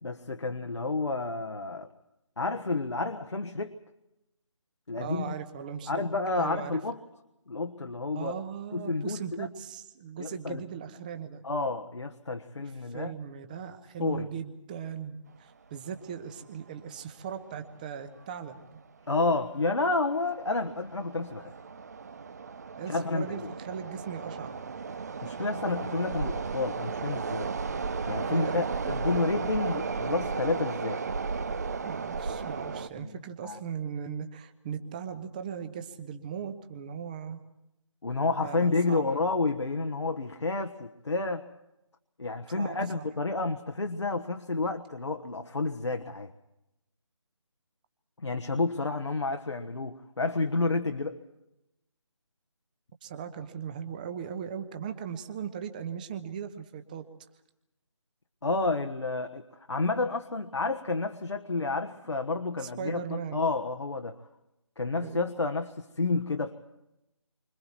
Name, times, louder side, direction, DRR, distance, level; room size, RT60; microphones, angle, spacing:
voice 1, 0.0-1.9 2.4-3.7 4.9-5.3 5.9-7.0 7.5-8.4 8.7-9.5 10.2-10.6 11.4-13.1 14.0-14.3 19.1-21.5 22.9-23.5 25.2-27.5 28.1-31.0 32.9-33.1 33.4-33.6 38.0-41.5 42.2-46.3 48.2-51.2 58.4-64.2 64.8-66.6, left 3 dB, 65° left, 5 dB, 1.4 m, -30 dB
voice 2, 5.0-6.0 6.4-6.8 8.1-11.4 12.9-18.6 22.8-24.6 28.3-28.6 31.8-37.4 38.4-39.1 42.5-43.0 53.0-57.0 62.6-63.4 64.9-65.3, right 7 dB, 15° right, 9 dB, 1.1 m, -38 dB
sound 1, 16.0-16.1 16.3-16.4 17.2-17.4 17.7-17.9 18.4-18.8 19.3-32.9, right 5 dB, 30° right, 0.8 m, -35 dB
29.5 x 25.5 x 4.5 m, 0.90 s
figure-of-eight pair, 155°, 16 cm